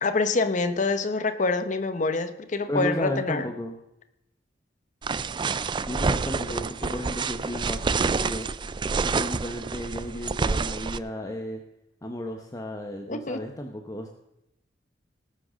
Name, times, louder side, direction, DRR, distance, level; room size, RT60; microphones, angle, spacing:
voice 1, 0.0-3.5 13.1-13.4, left 3 dB, 45° left, 8 dB, 1.0 m, -26 dB
voice 2, 2.7-3.8 5.9-8.5 9.0-11.6 12.0-14.1, equal, 20° left, 3 dB, 0.9 m, -33 dB
sound 1, 5.0-11.0, right 4 dB, 25° right, 0.4 m, -28 dB
18.5 x 6.3 x 6.3 m, 0.86 s
head